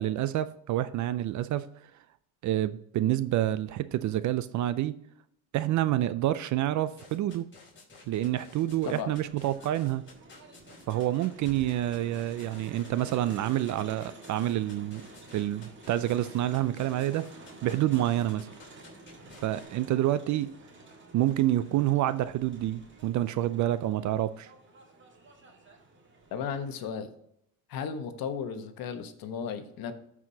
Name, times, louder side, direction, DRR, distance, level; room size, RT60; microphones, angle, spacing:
voice 1, 0.0-1.7 2.4-5.0 5.5-7.4 8.1-10.0 10.9-15.0 15.3-17.3 17.6-18.5 19.4-20.6 21.1-24.5, right 13 dB, 45° right, 0.4 m, -28 dB
sound 1, 6.9-19.7, left 3 dB, 25° left, 2.8 m, -53 dB
Crowd, 8.6-26.9, right 2 dB, 25° right, 1.9 m, -51 dB
voice 2, 26.3-27.1 27.7-29.9, left 6 dB, 55° left, 1.2 m, -35 dB
13.5 x 4.8 x 2.8 m
supercardioid pair, 100°, 43 cm